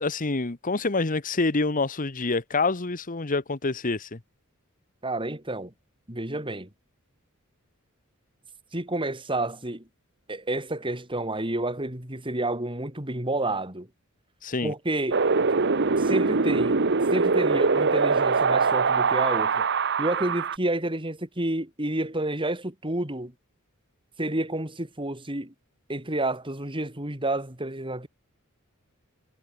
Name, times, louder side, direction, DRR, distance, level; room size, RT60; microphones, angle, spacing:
voice 1, 0.0-4.2 14.4-14.7, left 3 dB, 40° left, 1.2 m, -27 dB
voice 2, 5.0-5.7 6.1-6.7 8.7-9.8 10.3-13.9 14.6-15.2 16.0-16.8 17.1-19.7 20.0-23.3 24.2-25.5 25.9-28.1, right 1 dB, 25° right, 4.3 m, -29 dB
Wind, 15.1-20.6, right 4 dB, 55° right, 1.0 m, -23 dB
head